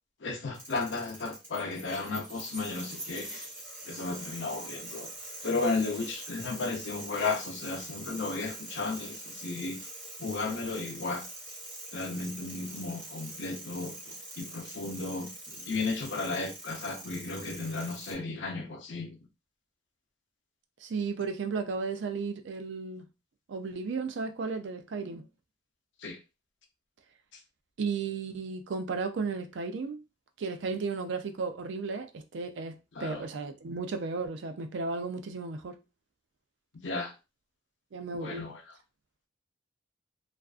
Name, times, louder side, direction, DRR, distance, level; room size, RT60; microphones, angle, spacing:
voice 1, 0.2-3.4 3.9-5.1 5.4-9.8 10.2-11.2 11.9-13.9 14.4-15.3 15.7-19.2 26.0-26.2 33.0-33.2 36.8-37.1 38.2-38.5, left 3 dB, 80° left, 0.6 m, -34 dB
sound 1, 0.5-18.1, right 1 dB, 15° right, 0.8 m, -44 dB
voice 2, 20.8-23.1 23.5-25.3 27.8-30.0 30.4-35.8 37.9-38.5, right 4 dB, 75° right, 0.4 m, -34 dB
2.5 x 2.3 x 2.4 m
head